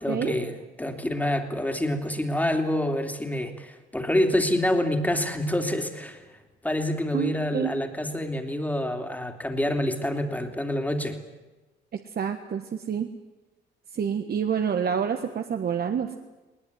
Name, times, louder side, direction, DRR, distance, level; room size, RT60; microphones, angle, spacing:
voice 1, 0.0-6.2 6.6-11.2, left 1 dB, 10° left, 5 dB, 3.0 m, -27 dB
voice 2, 7.1-7.7 11.9-13.1 13.9-16.2, right 7 dB, 50° right, 6 dB, 1.5 m, -28 dB
20.5 x 19.5 x 9.6 m, 1.1 s
cardioid pair, 90°, 20 cm